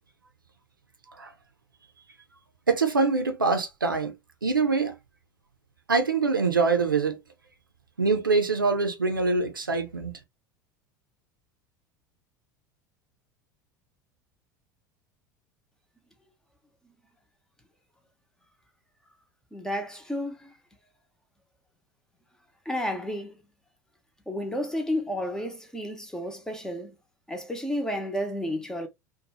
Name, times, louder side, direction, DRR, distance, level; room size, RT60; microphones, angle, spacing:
voice 1, 2.7-4.1 4.4-4.9 5.9-7.2 8.0-10.1, right 4 dB, 90° right, 0.6 m, -24 dB
voice 2, 19.5-20.5 22.6-23.3 24.3-26.9 27.3-28.9, equal, 5° left, 0.7 m, -31 dB
2.7 x 2.3 x 2.8 m
figure-of-eight pair, 75°, 11 cm